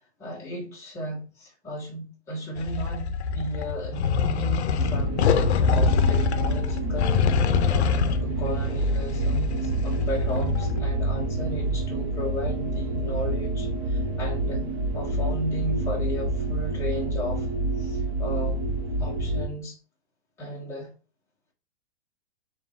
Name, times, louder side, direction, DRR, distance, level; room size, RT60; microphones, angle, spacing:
voice 1, 0.2-5.3 5.7-7.3 7.7-14.6 14.9-17.5 17.8-18.6 19.0-19.8 20.4-20.9, equal, 10° left, 1.4 m, -35 dB
sound 1, 2.6-10.8, left 6 dB, 75° left, 0.6 m, -25 dB
sound 2, 4.8-19.5, right 2 dB, 15° right, 0.5 m, -27 dB
3.8 x 2.7 x 4.2 m
hypercardioid pair, 165°, 33 cm